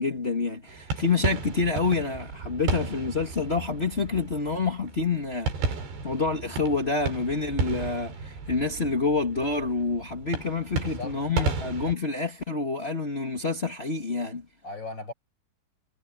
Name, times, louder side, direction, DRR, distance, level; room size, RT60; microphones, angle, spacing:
voice 1, 0.0-5.5 6.0-14.4, left 4 dB, 55° left, 0.6 m, -27 dB
sound 1, 0.7-11.9, right 4 dB, 75° right, 7.2 m, -34 dB
voice 2, 10.7-11.5 14.6-15.1, left 3 dB, 25° left, 6.1 m, -38 dB
omnidirectional pair, 4.9 m